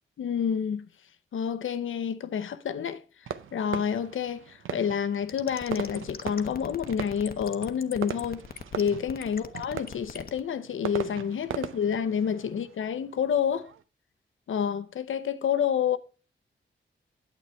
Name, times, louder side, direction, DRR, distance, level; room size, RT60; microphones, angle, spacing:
voice 1, 0.2-0.9 1.3-3.0 3.5-8.4 8.8-13.7 14.5-16.0, left 8 dB, 80° left, 0.7 m, -29 dB
Fireworks, 3.3-13.8, right 8 dB, 85° right, 0.6 m, -40 dB
sound 1, 5.3-10.4, left 6 dB, 50° left, 0.8 m, -40 dB
9.1 x 8.2 x 4.3 m
cardioid pair, 80°, 20 cm